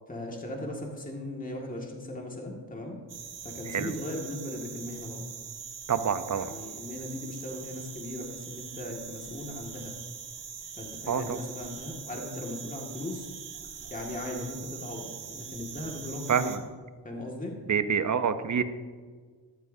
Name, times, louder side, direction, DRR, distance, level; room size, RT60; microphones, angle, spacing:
voice 1, 0.1-3.0 3.4-5.2 6.3-9.9 10.8-13.3 13.9-16.5 17.0-17.5, left 1 dB, 20° left, -1 dB, 2.0 m, -38 dB
sound 1, 3.1-16.6, right 7 dB, 75° right, 1.4 m, -43 dB
voice 2, 5.9-6.5 11.1-11.4 16.3-16.6 17.7-18.6, right 7 dB, 40° right, 11 dB, 0.8 m, -27 dB
14.0 x 12.0 x 2.7 m, 1.5 s
cardioid pair, 75°, 43 cm